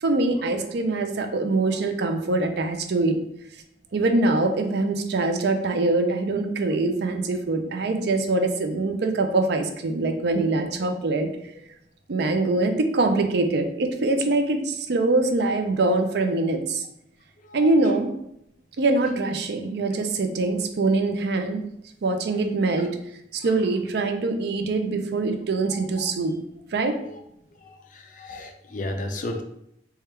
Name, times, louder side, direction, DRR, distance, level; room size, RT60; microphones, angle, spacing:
voice 1, 0.0-3.2 3.9-11.3 12.1-16.8 17.5-18.1 18.8-21.6 22.0-22.9 23.3-26.4 26.7-27.0, right 2 dB, 65° right, 5 dB, 0.5 m, -23 dB
voice 2, 17.4-17.7 19.2-19.3 23.8-23.9 25.7-26.1 27.0-27.2 27.6-29.4, left 1 dB, 50° left, 4 dB, 0.5 m, -35 dB
3.4 x 2.3 x 4.3 m, 0.76 s
head